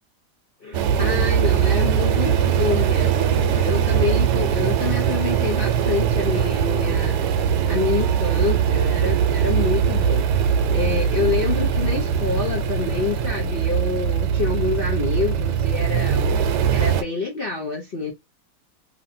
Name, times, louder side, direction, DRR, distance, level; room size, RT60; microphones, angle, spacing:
voice 1, 0.6-7.2 7.7-16.3 16.7-18.1, left 5 dB, 65° left, 0.5 m, -27 dB
sound 1, 0.7-17.0, right 8 dB, 80° right, 1.2 m, -21 dB
3.0 x 2.6 x 2.6 m
omnidirectional pair, 1.8 m